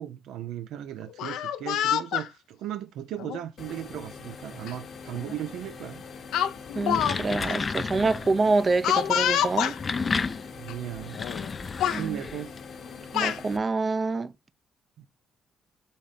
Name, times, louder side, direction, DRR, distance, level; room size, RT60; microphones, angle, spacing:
voice 1, 0.0-6.0 10.6-11.2 12.0-12.5 15.0-15.1, right 11 dB, 85° right, 0.4 m, -36 dB
Speech, 1.1-2.3 3.2-3.4 4.7-4.8 5.1-5.4 6.3-7.2 7.4-7.5 8.8-9.8 10.7-10.8 11.1-11.5 11.8-12.0 12.8-13.4, left 10 dB, 85° left, 0.5 m, -27 dB
sound 1, 3.6-13.6, left 5 dB, 60° left, 1.0 m, -43 dB
sound 2, 6.7-8.4 9.5-12.6, left 4 dB, 35° left, 0.4 m, -32 dB
voice 2, 6.8-9.7 11.9-12.2 13.1-14.3, right 3 dB, 35° right, 0.5 m, -26 dB
4.1 x 3.6 x 3.3 m
cardioid pair, 90°, 0 cm